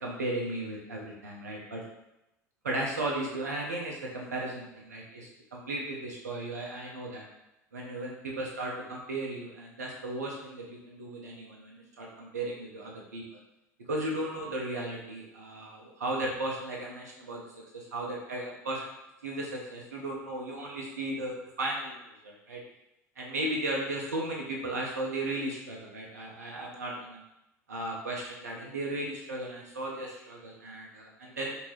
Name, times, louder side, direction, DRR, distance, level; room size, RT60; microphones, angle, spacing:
voice 1, 0.0-1.8 2.6-7.2 7.7-13.2 13.9-17.4 17.7-18.9 19.2-22.0 22.2-22.6 23.2-27.2 27.7-31.5, right 1 dB, 75° right, -2 dB, 0.4 m, -35 dB
2.6 x 2.3 x 3.0 m, 0.89 s
figure-of-eight pair, 65°, 9 cm